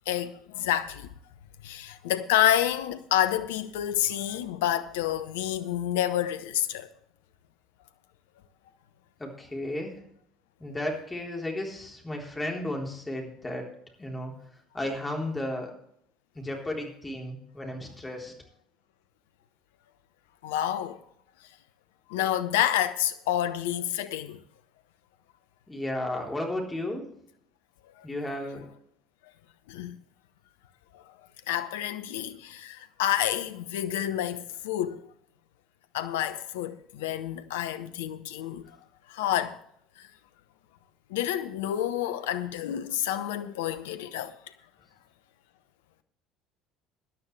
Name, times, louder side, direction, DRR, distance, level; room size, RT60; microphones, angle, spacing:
voice 1, 0.1-1.1 1.6-6.9 20.4-21.0 22.1-24.4 29.7-30.0 30.9-31.0 31.5-35.0 35.9-38.8 39.1-39.6 40.0-40.1 41.1-44.3, left 11 dB, 70° left, 0.8 m, -29 dB
voice 2, 9.2-10.0 10.6-13.7 14.0-14.3 14.7-15.7 16.3-18.3 25.7-27.0 28.0-28.6, left 1 dB, 15° left, 3.8 m, -33 dB
17.5 x 11.5 x 3.3 m
figure-of-eight pair, 60°, 0 cm